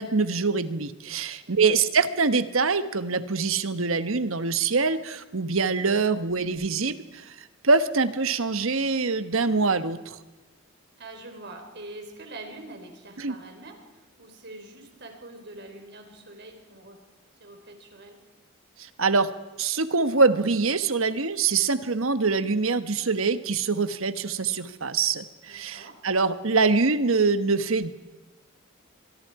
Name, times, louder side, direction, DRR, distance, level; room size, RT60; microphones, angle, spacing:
voice 1, 0.0-7.3 7.6-10.2 13.2-13.3 18.8-19.3 19.6-27.9, right 4 dB, 75° right, 11 dB, 1.2 m, -24 dB
voice 2, 1.5-2.0 11.0-13.8 14.2-17.0 17.4-18.2 25.4-26.0, right 2 dB, 55° right, 4 dB, 4.3 m, -44 dB
24.5 x 23.5 x 4.8 m, 1.2 s
head